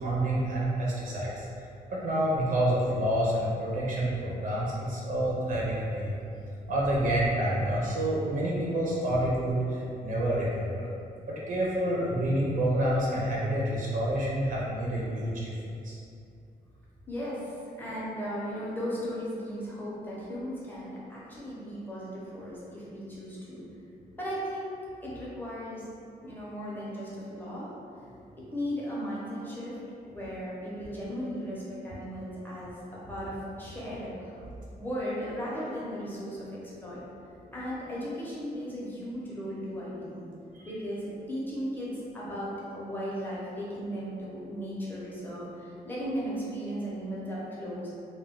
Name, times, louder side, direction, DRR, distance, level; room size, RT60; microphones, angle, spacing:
voice 1, 0.0-1.5 1.9-6.2 6.7-10.9 11.3-15.5 15.8-16.0 40.5-40.7, right 1 dB, 55° right, -5 dB, 0.4 m, -28 dB
voice 2, 17.1-23.6 24.2-24.8 25.0-25.9 26.2-27.7 28.4-34.3 34.8-37.0 37.5-40.3 40.7-47.9, equal, 10° left, -8 dB, 0.6 m, -36 dB
2.2 x 2.1 x 3.5 m, 2.6 s
wide cardioid pair, 175°, 16 cm